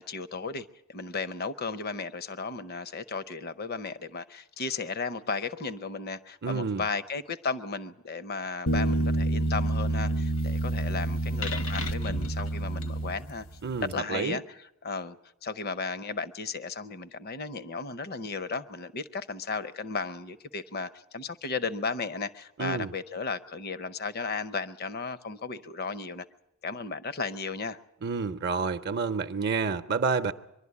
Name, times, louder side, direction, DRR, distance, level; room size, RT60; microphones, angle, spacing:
voice 1, 0.0-13.5 13.9-15.2 15.4-26.3 26.6-27.8, left 4 dB, 45° left, 0.7 m, -35 dB
voice 2, 6.4-6.8 13.6-14.4 22.6-22.9 28.0-30.3, right 5 dB, 50° right, 0.6 m, -29 dB
sound 1, 8.7-13.6, right 1 dB, 70° left, 1.1 m, -28 dB
23.5 x 11.5 x 9.6 m
head